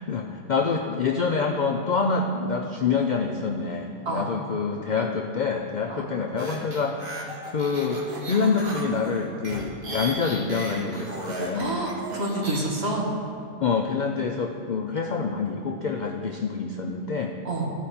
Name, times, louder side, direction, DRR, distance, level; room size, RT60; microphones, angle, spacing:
voice 1, 0.1-11.8 13.6-17.3, left 5 dB, 80° left, 2 dB, 0.4 m, -26 dB
sound 1, 6.4-12.6, right 1 dB, 80° right, 1.8 m, -35 dB
voice 2, 11.5-13.1 17.4-17.7, right 1 dB, 50° right, -3 dB, 1.8 m, -28 dB
15.0 x 5.1 x 4.2 m, 2.3 s
omnidirectional pair, 1.4 m